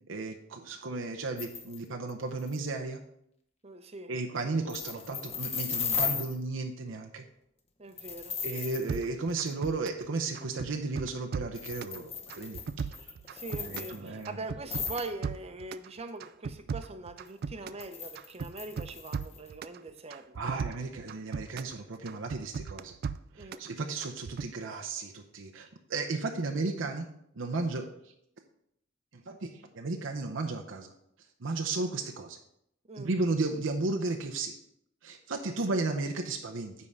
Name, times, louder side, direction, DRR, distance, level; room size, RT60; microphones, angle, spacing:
voice 1, 0.1-3.0 4.1-7.2 8.4-12.6 13.6-14.4 20.4-23.0 23.3-27.1 27.4-27.9 29.3-30.9 31.4-32.4 33.0-34.5 35.0-36.7, right 3 dB, 85° right, 3 dB, 0.8 m, -34 dB
sound 1, 1.4-1.8 2.1-2.2 2.4-2.6 4.7-6.4 8.0-9.0 9.5-9.6 11.5-14.2 14.6-15.1 17.8-19.5, left 6 dB, 35° left, 0.9 m, -36 dB
voice 2, 3.6-4.1 4.4-4.6 7.8-8.4 13.3-20.6 23.4-23.6 32.9-33.1 35.5-35.8, right 2 dB, 35° right, 8 dB, 0.7 m, -42 dB
sound 2, 8.9-10.1 10.3-12.0 12.3-14.0 14.2-15.9 16.2-17.9 18.2-19.8 20.1-21.8 22.1-23.7 24.0-24.5, right 5 dB, 55° right, 0.3 m, -37 dB
9.7 x 3.7 x 5.5 m, 0.74 s
head